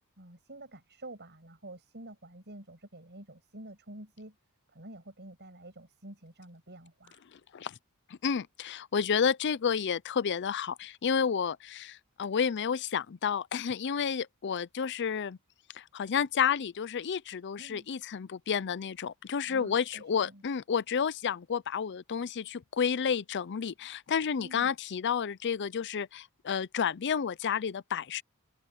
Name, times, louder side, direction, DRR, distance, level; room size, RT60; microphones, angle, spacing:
voice 1, 0.2-4.4 4.7-7.2 17.6-17.9 19.5-20.4 24.4-24.7, right 1 dB, 50° right, 7.5 m, -49 dB
voice 2, 7.3-7.7 8.1-15.4 15.7-28.2, left 7 dB, 55° left, 0.5 m, -31 dB
head